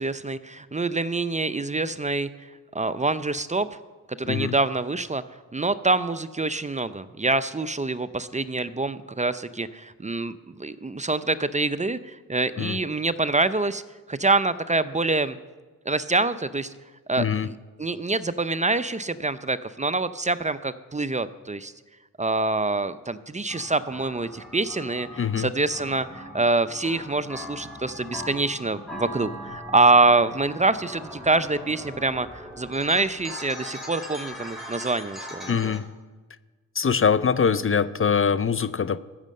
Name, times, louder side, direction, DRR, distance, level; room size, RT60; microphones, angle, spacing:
voice 1, 0.0-2.5 2.7-3.8 4.2-5.2 5.5-13.8 14.1-15.4 15.9-16.7 17.1-21.7 22.2-35.7, right 3 dB, 20° right, 13 dB, 0.6 m, -25 dB
voice 2, 17.2-17.5 25.2-25.5 35.5-35.9 36.8-39.0, left 6 dB, 40° left, 15 dB, 0.6 m, -23 dB
sound 1, 23.5-35.8, equal, ahead, 4.8 m, -40 dB
14.5 x 6.5 x 7.6 m, 1.3 s
cardioid pair, 50°, 34 cm